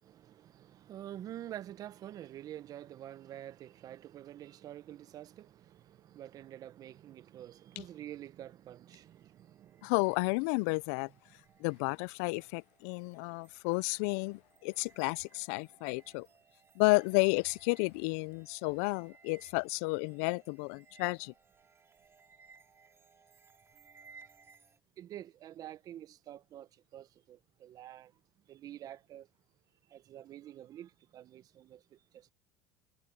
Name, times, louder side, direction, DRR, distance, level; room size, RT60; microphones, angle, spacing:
voice 1, 0.0-9.9 25.0-28.1 28.5-29.3 29.9-32.3, right 12 dB, 50° right, 1.1 m, -48 dB
sound 1, 8.9-24.8, right 5 dB, 30° right, 2.9 m, -63 dB
voice 2, 9.8-11.1 11.6-16.3 16.8-21.3, left 29 dB, 75° left, 0.4 m, -31 dB
supercardioid pair, 85°, 8 cm